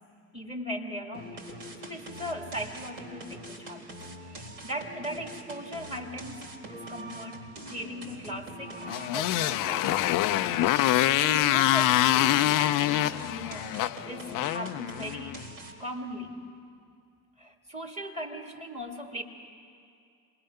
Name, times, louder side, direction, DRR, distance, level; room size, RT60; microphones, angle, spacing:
voice 1, 0.3-1.4 1.8-10.5 10.8-15.4 15.8-16.4 17.4-19.2, equal, 15° right, 2 dB, 2.6 m, -39 dB
sound 1, 1.1-15.9, right 1 dB, 65° right, 3.7 m, -44 dB
Motorcycle, 8.8-15.4, left 14 dB, 45° left, 0.6 m, -25 dB
27.0 x 20.5 x 5.7 m, 2.4 s
figure-of-eight pair, 55°, 47 cm